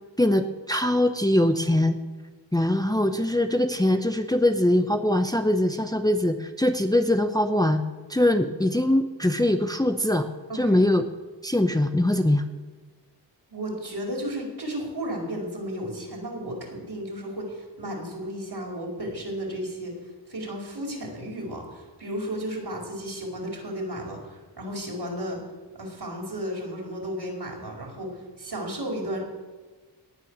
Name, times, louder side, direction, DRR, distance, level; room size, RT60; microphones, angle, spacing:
voice 1, 0.2-2.0 2.5-7.8 8.1-11.1 11.4-12.4, left 1 dB, 10° left, 7 dB, 0.9 m, -22 dB
voice 2, 10.5-10.8 13.5-20.0 20.3-25.4 25.8-29.2, equal, 60° right, -1 dB, 4.8 m, -33 dB
18.5 x 9.0 x 6.5 m, 1.3 s
cardioid pair, 60°, 43 cm